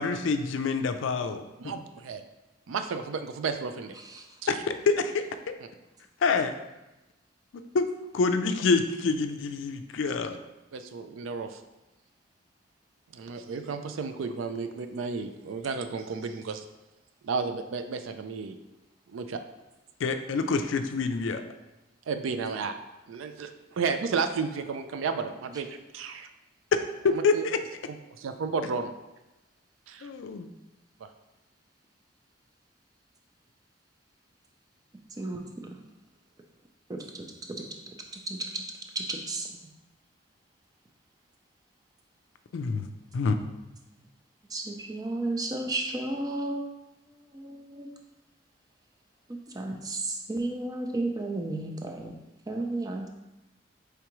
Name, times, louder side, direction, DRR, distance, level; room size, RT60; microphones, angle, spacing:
voice 1, 0.0-1.7 4.5-5.5 6.2-6.5 7.7-7.9 8.1-10.4 20.0-21.4 27.0-27.6 30.0-30.5 42.5-42.9 43.1-43.3, left 4 dB, 75° left, 8 dB, 0.4 m, -27 dB
voice 2, 1.6-2.2 2.7-4.0 10.7-11.6 13.1-16.6 17.2-18.6 19.1-19.4 22.1-22.7 23.1-25.7 25.9-26.3 27.1-27.4 28.2-28.9 29.9-30.1, right 5 dB, 90° right, 8 dB, 0.4 m, -32 dB
voice 3, 35.2-35.7 36.9-37.6 38.3-38.4 39.0-39.5 44.5-46.6 47.3-47.9 49.3-52.1 52.5-53.1, right 2 dB, 20° right, 2 dB, 0.4 m, -33 dB
4.7 x 3.4 x 3.0 m, 0.99 s
head